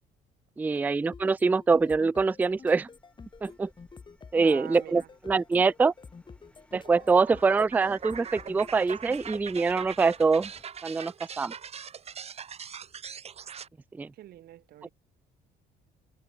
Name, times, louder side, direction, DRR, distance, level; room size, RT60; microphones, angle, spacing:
voice 1, 0.6-2.9 3.4-3.7 4.3-5.9 6.7-10.5 10.8-11.5 14.0-14.1, right 4 dB, 10° right, 0.3 m, -24 dB
sound 1, 1.1-9.4, left 5 dB, 30° left, 6.5 m, -49 dB
sound 2, 1.7-10.6, left 1 dB, 5° left, 5.3 m, -59 dB
voice 2, 4.4-5.1 14.1-14.9, right 13 dB, 65° right, 2.0 m, -45 dB
sound 3, 6.7-13.7, right 7 dB, 40° right, 1.5 m, -41 dB
cardioid pair, 110°, 17 cm